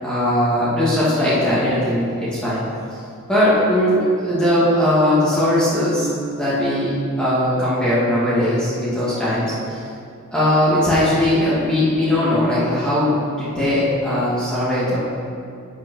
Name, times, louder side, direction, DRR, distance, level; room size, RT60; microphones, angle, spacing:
voice 1, 0.0-2.6 2.9-3.0 3.3-6.1 6.3-9.8 10.3-15.0, left 1 dB, 5° left, -11 dB, 2.2 m, -19 dB
8.4 x 7.3 x 6.3 m, 2.5 s
head